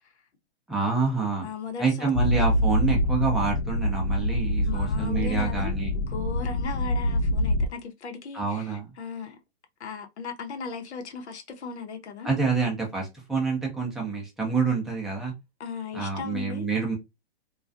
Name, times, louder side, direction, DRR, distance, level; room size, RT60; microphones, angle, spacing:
voice 1, 0.7-1.5 1.8-5.9 8.3-8.9 12.2-15.3 15.9-17.0, right 4 dB, ahead, 0.4 m, -27 dB
voice 2, 1.4-2.1 4.6-9.4 9.8-12.3 15.6-16.7, left 5 dB, 85° left, 0.9 m, -37 dB
sound 1, 2.2-7.7, left 1 dB, 65° left, 0.5 m, -25 dB
2.3 x 2.3 x 2.4 m
hypercardioid pair, 140°, 33 cm